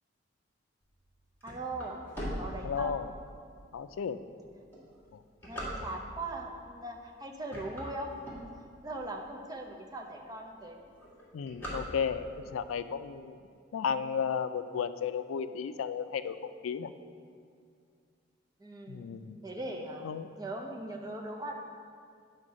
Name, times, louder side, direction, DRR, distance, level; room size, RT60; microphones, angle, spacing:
sound 1, 1.0-3.2 3.8-3.9 4.6-6.3 6.9-7.1 7.4-9.0 9.5-9.6 9.8-9.9 10.2-10.5 10.8-12.4, equal, 10° left, 1.7 m, -40 dB
voice 1, 1.4-2.0 2.3-3.0 4.8-4.9 5.5-8.1 8.8-10.8 18.6-19.1 19.4-20.1 20.4-21.5, right 2 dB, 20° right, 1 dB, 0.6 m, -40 dB
voice 2, 2.6-3.1 3.7-4.2 11.3-13.4 13.7-16.9 18.9-19.4 20.0-20.3, left 6 dB, 90° left, 12 dB, 0.4 m, -34 dB
8.4 x 4.4 x 6.3 m, 2.2 s
head